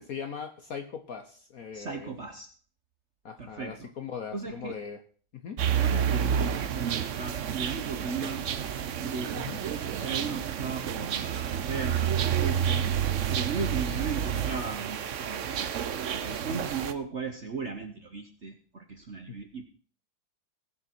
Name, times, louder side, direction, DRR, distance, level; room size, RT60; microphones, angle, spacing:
voice 1, 0.0-2.1 3.2-5.0 5.3-5.6 9.3-9.6, left 6 dB, 55° left, 6 dB, 1.1 m, -39 dB
voice 2, 1.7-2.5 3.4-3.9 4.3-4.8 5.7-8.4 9.0-12.9 13.3-15.7 16.1-19.7, right 5 dB, 45° right, 6 dB, 1.0 m, -37 dB
sound 1, 5.6-16.9, right 9 dB, 75° right, 0.7 m, -29 dB
19.5 x 6.8 x 4.4 m, 0.43 s
omnidirectional pair, 2.3 m